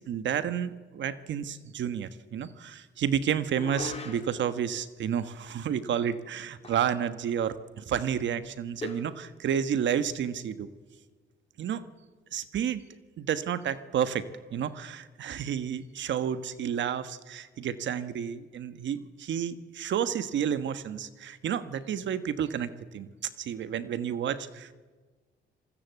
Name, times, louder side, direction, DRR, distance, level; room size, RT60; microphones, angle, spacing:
voice 1, 0.0-10.7 11.6-11.8 12.3-12.8 13.2-23.1 23.4-24.7, right 8 dB, 65° right, 12 dB, 1.3 m, -31 dB
sound 1, 3.5-4.5 6.6-7.0 7.3-7.4 8.8-9.2, left 3 dB, 30° left, 3.8 m, -39 dB
26.5 x 20.5 x 8.3 m, 1.3 s
cardioid pair, 90°, 20 cm